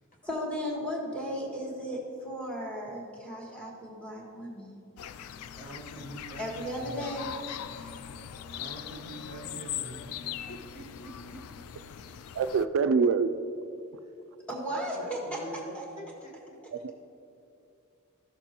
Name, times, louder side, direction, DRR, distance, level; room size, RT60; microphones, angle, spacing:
voice 1, 0.2-4.8 6.4-7.9 14.5-15.8, equal, 5° left, -3 dB, 1.6 m, -36 dB
sound 1, 5.0-12.7, left 9 dB, 80° left, 0.3 m, -41 dB
voice 2, 5.5-7.0 8.5-11.6 14.0-14.1 14.7-16.9, right 1 dB, 35° left, -1 dB, 1.2 m, -46 dB
voice 3, 12.3-13.3 16.7-16.9, right 5 dB, 65° right, 11 dB, 0.3 m, -25 dB
13.5 x 6.8 x 2.9 m, 2.6 s
head